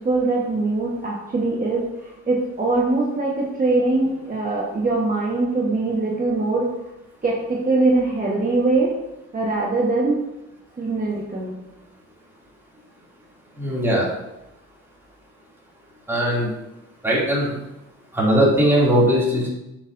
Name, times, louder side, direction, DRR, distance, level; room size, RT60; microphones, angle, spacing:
voice 1, 0.0-6.7 7.2-8.9 9.3-10.2 10.8-11.5, right 2 dB, 30° right, -4 dB, 1.4 m, -22 dB
voice 2, 13.6-14.1 16.1-16.5 17.0-17.5 18.1-19.5, equal, 10° right, -6 dB, 2.7 m, -19 dB
7.1 x 6.9 x 2.7 m, 0.92 s
cardioid pair, 90°, 30 cm